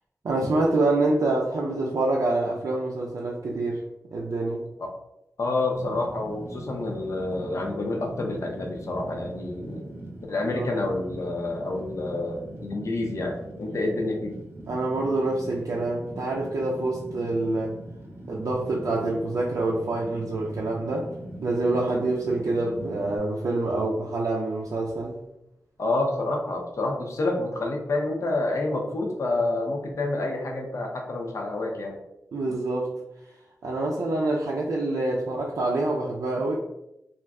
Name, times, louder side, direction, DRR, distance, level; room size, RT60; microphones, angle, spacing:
voice 1, 0.2-3.8 4.1-4.7 10.5-10.7 14.7-17.7 18.3-21.1 21.4-25.2 32.3-32.9 33.6-36.6, right 2 dB, 70° right, -3 dB, 0.4 m, -26 dB
voice 2, 5.4-9.9 10.3-14.4 25.8-32.0, left 2 dB, 60° left, 1 dB, 0.6 m, -28 dB
Fire, 5.7-23.2, right 1 dB, 40° right, 0.7 m, -41 dB
2.4 x 2.2 x 3.5 m, 0.87 s
wide cardioid pair, 90°, 6 cm